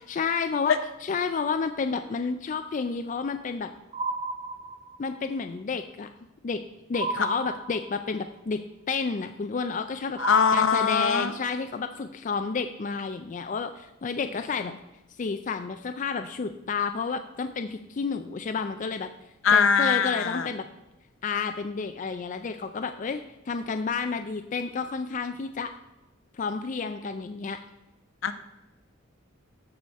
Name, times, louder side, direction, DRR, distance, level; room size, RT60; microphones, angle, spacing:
voice 1, 0.1-0.8 1.0-3.7 5.0-6.1 6.4-6.6 6.9-10.2 10.5-14.7 15.2-19.1 19.5-20.6 21.2-25.7 26.3-27.6, left 5 dB, 40° left, 7 dB, 0.4 m, -30 dB
sound 1, 3.9-5.2 6.9-8.2 10.2-11.4, right 3 dB, 25° right, 0.6 m, -33 dB
voice 2, 10.2-11.3 19.4-20.5 28.2-28.3, left 6 dB, 70° left, 11 dB, 0.7 m, -22 dB
13.5 x 5.0 x 4.1 m, 0.95 s
head